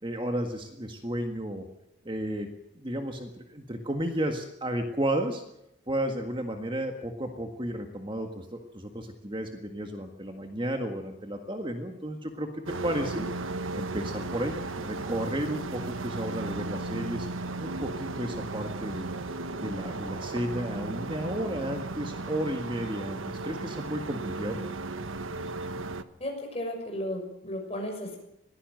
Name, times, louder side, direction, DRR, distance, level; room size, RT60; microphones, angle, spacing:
voice 1, 0.0-1.6 2.0-2.5 2.7-5.4 5.9-13.2 13.7-17.3 17.6-19.1 19.6-24.6, right 1 dB, 25° right, 5 dB, 1.7 m, -33 dB
sound 1, 12.7-26.0, right 3 dB, 80° right, 1.2 m, -35 dB
voice 2, 26.2-28.2, left 1 dB, 30° left, 2 dB, 6.4 m, -34 dB
21.5 x 16.0 x 7.8 m, 0.84 s
head